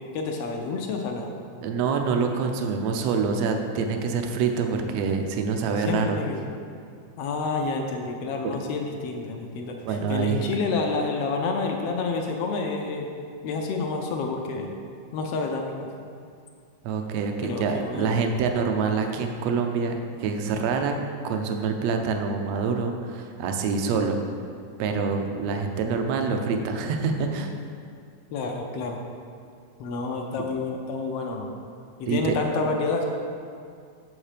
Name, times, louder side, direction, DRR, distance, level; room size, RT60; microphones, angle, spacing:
voice 1, 0.0-1.4 5.9-6.4 7.2-13.1 13.4-14.7 15.1-15.9 17.4-18.2 28.3-29.0 29.8-31.5 32.0-33.1, left 4 dB, 75° left, 2 dB, 1.4 m, -29 dB
voice 2, 1.6-6.2 8.4-8.6 9.8-10.4 16.8-20.9 21.2-24.2 24.8-27.5 32.1-32.4, right 5 dB, 75° right, 4 dB, 1.6 m, -26 dB
7.3 x 7.3 x 5.0 m, 2.3 s
omnidirectional pair, 3.5 m